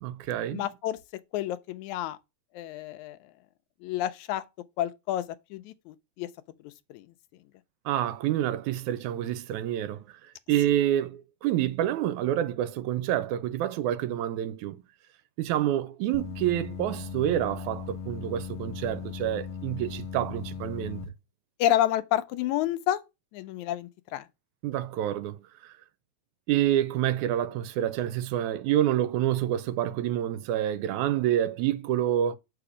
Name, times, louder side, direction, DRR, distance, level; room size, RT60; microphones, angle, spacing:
voice 1, 0.0-0.6 7.9-10.1 10.5-14.8 15.4-21.0 24.6-25.4 25.6-25.7 26.5-32.4, right 12 dB, 85° right, 2.1 m, -28 dB
voice 2, 0.5-1.0 1.3-2.2 2.5-3.2 3.8-4.4 4.8-5.2 5.5-6.3 6.6-7.1 21.6-23.0 23.3-24.3, left 12 dB, 80° left, 2.0 m, -29 dB
sound 1, 16.1-21.0, left 6 dB, 65° left, 1.3 m, -38 dB
6.9 x 4.9 x 4.9 m
omnidirectional pair, 3.3 m